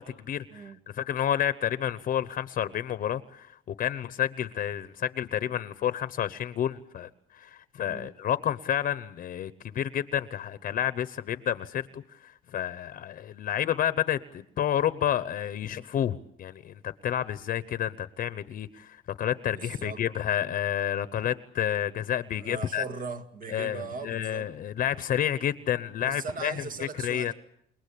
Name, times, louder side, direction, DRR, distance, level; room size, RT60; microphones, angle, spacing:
voice 1, 0.0-22.8 23.5-26.5 26.8-27.3, left 10 dB, 50° left, 0.9 m, -30 dB
voice 2, 19.5-20.0 22.3-24.5 26.0-27.3, right 5 dB, 50° right, 1.9 m, -39 dB
29.0 x 19.5 x 8.5 m
cardioid pair, 135°, 18 cm